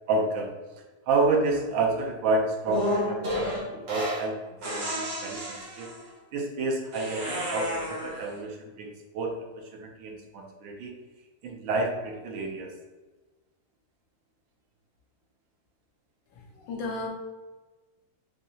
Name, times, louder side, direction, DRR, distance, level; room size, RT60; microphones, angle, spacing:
voice 1, 0.1-0.5 1.1-4.4 4.6-5.9 6.3-10.9 11.4-12.7, right 3 dB, 80° right, 1 dB, 1.4 m, -29 dB
sound 1, 2.7-4.3 4.6-6.1 6.9-8.3, equal, 55° right, 0.7 m, -31 dB
voice 2, 16.3-17.1, left 3 dB, 75° left, 0 dB, 1.4 m, -35 dB
4.1 x 2.7 x 2.7 m, 1.2 s
omnidirectional pair, 2.1 m